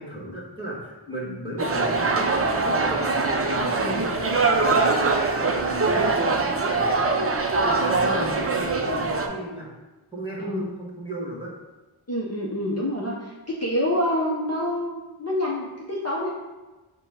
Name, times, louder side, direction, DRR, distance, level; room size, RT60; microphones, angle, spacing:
voice 1, 0.0-3.2 3.4-9.7 10.1-11.5, equal, 10° right, -5 dB, 1.3 m, -36 dB
sound 1, 1.6-9.3, right 3 dB, 30° right, 0.4 m, -23 dB
voice 2, 3.7-4.0 8.0-8.4 10.4-10.7 12.1-16.3, left 1 dB, 30° left, -5 dB, 0.7 m, -27 dB
4.9 x 2.2 x 4.9 m, 1.2 s
wide cardioid pair, 50°, 50 cm